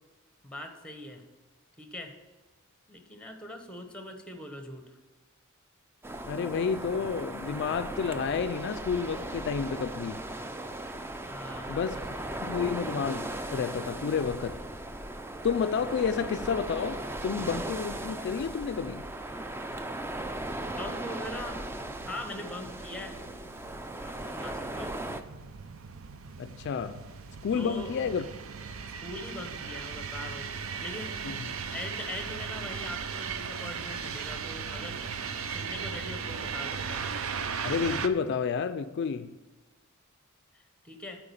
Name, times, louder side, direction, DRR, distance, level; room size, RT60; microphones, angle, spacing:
voice 1, 0.4-1.2 1.8-2.1 2.9-4.9 11.3-12.3 20.6-21.6 22.1-23.2 24.0-24.9 27.5-27.9 29.0-30.5 30.8-31.2 31.7-35.0 35.5-37.0 40.5-41.2, left 1 dB, 5° left, 5 dB, 1.0 m, -41 dB
sound 1, 6.0-25.2, right 1 dB, 10° right, 0.4 m, -37 dB
voice 2, 6.3-10.2 11.7-12.0 12.4-14.6 15.4-19.0 26.4-27.0 27.4-28.2 31.2-31.4 37.6-39.3, left 6 dB, 55° left, 10 dB, 0.3 m, -30 dB
sound 2, 21.4-38.1, right 6 dB, 75° right, 0.5 m, -38 dB
8.7 x 4.6 x 6.9 m, 1.2 s
head